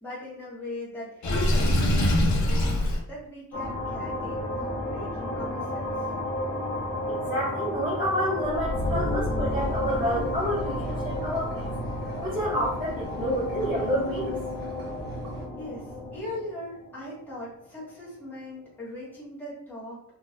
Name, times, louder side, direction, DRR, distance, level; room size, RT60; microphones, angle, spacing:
voice 1, 0.0-6.1 15.5-20.0, left 1 dB, 5° left, -9 dB, 1.5 m, -40 dB
Water / Sink (filling or washing), 1.2-3.0, left 1 dB, 55° left, 0.7 m, -22 dB
sound 1, 3.5-17.7, left 1 dB, 75° left, 1.3 m, -31 dB
voice 2, 7.1-11.7 12.2-14.3, equal, 10° right, -10 dB, 1.0 m, -29 dB
sound 2, 9.5-15.5, right 1 dB, 85° right, 1.5 m, -42 dB
4.1 x 2.3 x 2.4 m, 0.67 s
wide cardioid pair, 155°, 34 cm